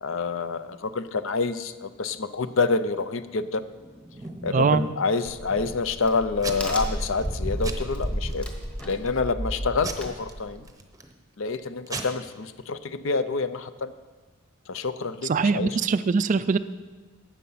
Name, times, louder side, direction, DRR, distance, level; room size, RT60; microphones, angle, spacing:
voice 1, 0.0-3.7 4.4-8.5 8.8-10.7 11.4-13.9 14.7-15.8, left 4 dB, 60° left, 13 dB, 0.6 m, -27 dB
Packing tape duct tape / Tearing, 3.6-5.0 5.5-6.0 6.4-6.9 7.2-7.4 7.6-8.3 8.8-9.2 9.8-11.1 11.6-11.7 11.9-12.0, right 3 dB, 15° right, 0.8 m, -36 dB
voice 2, 4.5-4.8 15.3-16.6, right 4 dB, 35° right, 14 dB, 0.3 m, -22 dB
Crack, 5.3-10.7, equal, 5° left, 1.1 m, -32 dB
12.5 x 8.4 x 5.6 m, 1.3 s
head